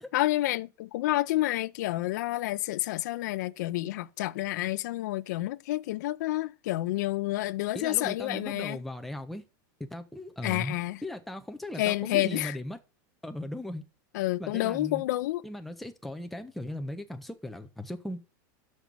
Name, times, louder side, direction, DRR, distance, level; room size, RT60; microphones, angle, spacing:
voice 1, 0.1-8.8 10.4-11.0 11.8-12.6 14.1-15.4, left 16 dB, 60° left, 0.4 m, -29 dB
voice 2, 7.7-9.4 9.8-12.8 13.2-13.8 14.4-15.0 15.4-18.2, left 1 dB, ahead, 0.5 m, -38 dB
6.2 x 5.3 x 5.9 m
supercardioid pair, 175°, 11 cm